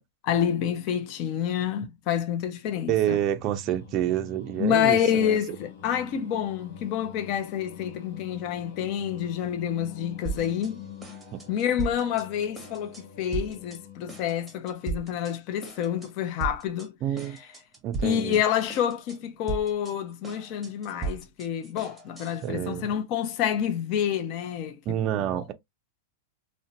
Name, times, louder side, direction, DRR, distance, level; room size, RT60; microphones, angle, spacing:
voice 1, 0.3-3.2 4.6-10.8 11.5-16.9 17.4-17.5 18.0-24.8 25.1-25.4, left 9 dB, 45° left, 0.5 m, -28 dB
voice 2, 2.9-5.4 17.0-17.4 17.8-18.4 22.4-22.9 24.9-25.5, right 11 dB, 40° right, 0.4 m, -28 dB
Singing, 3.3-14.4, left 9 dB, 60° left, 0.9 m, -45 dB
sound 1, 10.2-10.7 11.0-12.3 12.5-13.0 13.3-13.8 14.1-15.3 15.6-16.1 16.4-16.9 17.2-18.4 18.7-19.2 19.5-22.5, right 4 dB, 5° right, 0.9 m, -36 dB
2.6 x 2.1 x 2.5 m
hypercardioid pair, 130°, 0 cm